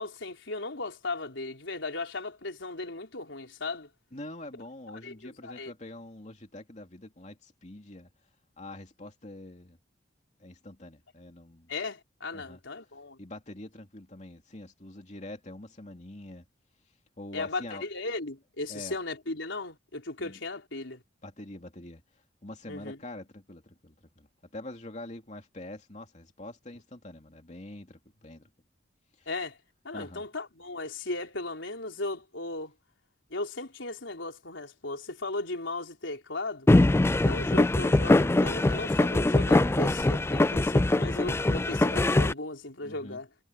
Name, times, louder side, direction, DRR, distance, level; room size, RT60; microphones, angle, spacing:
voice 1, 0.0-3.9 4.9-5.7 11.7-13.2 17.3-21.0 22.7-23.0 29.3-29.6 29.8-32.7 33.3-36.7 37.2-43.3, left 2 dB, 85° left, 4.1 m, -36 dB
voice 2, 4.1-8.1 8.6-9.8 10.4-11.7 12.3-12.6 13.2-16.4 17.2-17.8 18.7-19.0 20.2-20.4 21.2-22.0 22.4-24.3 24.5-28.5 29.2-29.3 29.9-30.2 42.8-43.2, left 1 dB, 40° left, 2.8 m, -45 dB
sound 1, 36.7-42.3, left 2 dB, 15° left, 0.3 m, -22 dB
head